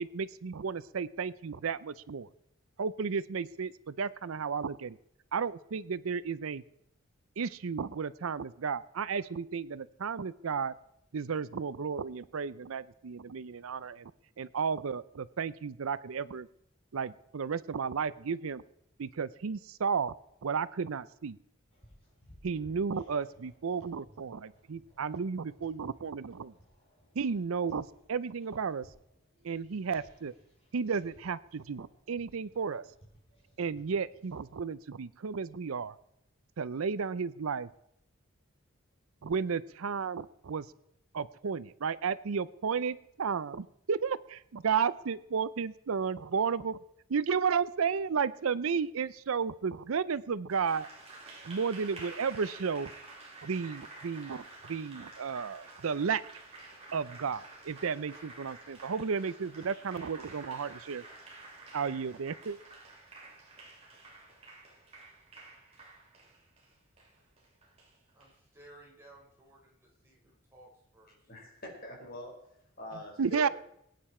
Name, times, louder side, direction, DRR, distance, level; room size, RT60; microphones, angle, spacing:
voice 1, 0.0-2.3 2.8-5.0 5.3-6.6 7.4-10.7 11.1-14.1 14.4-16.5 16.9-18.6 19.0-20.1 20.4-21.4 22.4-26.5 27.2-28.9 29.4-30.3 30.7-32.9 33.6-35.9 36.6-37.7 39.2-40.7 41.1-46.8 47.1-50.9 51.4-52.9 53.4-56.2 56.9-61.0 61.7-62.6 73.2-73.5, right 6 dB, 85° right, 17 dB, 0.5 m, -33 dB
sound 1, 21.7-34.7, equal, 25° left, 4.8 m, -61 dB
Applause, 50.5-68.3, right 3 dB, 30° right, 2.9 m, -50 dB
voice 2, 68.1-71.3, right 1 dB, 10° right, -4 dB, 4.7 m, -57 dB
voice 3, 71.3-72.3 72.8-73.5, equal, 45° left, 0 dB, 4.7 m, -44 dB
22.0 x 9.3 x 4.4 m, 0.75 s
head